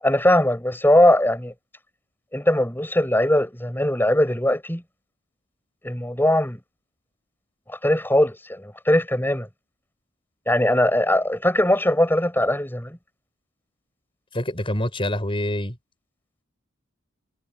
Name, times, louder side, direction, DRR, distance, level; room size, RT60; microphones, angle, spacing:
voice 1, 0.0-1.5 2.3-4.8 5.8-6.6 7.7-9.5 10.5-13.0, left 1 dB, 10° left, 7.5 m, -20 dB
voice 2, 14.3-15.8, left 1 dB, 25° left, 7.3 m, -26 dB
head